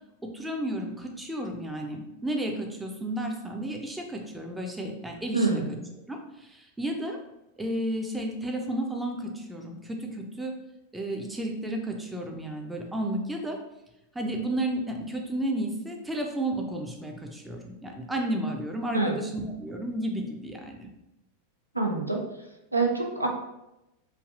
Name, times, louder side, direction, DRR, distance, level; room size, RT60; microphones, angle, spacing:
voice 1, 0.3-5.6 6.1-7.2 7.6-10.5 10.9-13.6 14.1-20.9, right 1 dB, 5° right, 2 dB, 0.4 m, -32 dB
voice 2, 5.3-5.8 18.9-19.2 21.7-22.2 22.7-23.3, right 3 dB, 85° right, 1 dB, 0.4 m, -25 dB
3.2 x 2.4 x 2.4 m, 0.91 s
figure-of-eight pair, 90°, 0 cm